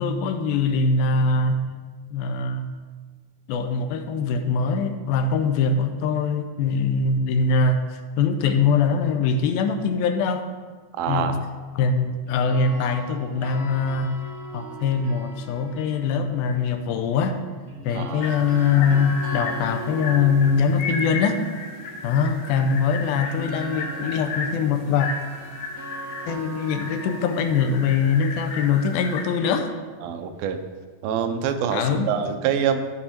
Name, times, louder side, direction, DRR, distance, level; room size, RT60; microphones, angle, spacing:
voice 1, 0.0-1.7 2.1-2.7 3.5-10.5 11.1-11.4 11.8-14.2 14.5-17.4 17.8-21.4 22.0-25.1 26.3-29.7 31.7-32.1, left 5 dB, 85° left, 7 dB, 2.4 m, -22 dB
voice 2, 10.9-11.4 17.9-18.3 30.0-30.6 31.0-32.8, right 8 dB, 85° right, 7 dB, 2.4 m, -25 dB
sound 1, 12.3-16.4 17.7-29.6, right 3 dB, 60° right, 3.0 m, -40 dB
sound 2, 18.2-29.2, left 4 dB, 70° left, 1.8 m, -34 dB
13.5 x 4.6 x 4.3 m, 1.4 s
omnidirectional pair, 4.1 m